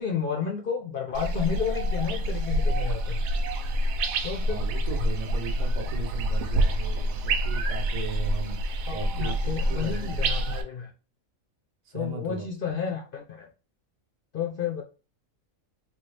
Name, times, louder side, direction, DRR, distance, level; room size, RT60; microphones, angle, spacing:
voice 1, 0.0-3.2 4.2-4.6 8.9-10.9 11.9-13.5 14.3-14.8, left 7 dB, 55° left, 0.6 m, -31 dB
sound 1, 1.1-10.6, right 1 dB, 80° right, 1.0 m, -27 dB
voice 2, 4.4-10.2 11.8-12.5, right 4 dB, 40° right, 0.6 m, -37 dB
3.5 x 2.3 x 3.1 m
omnidirectional pair, 1.4 m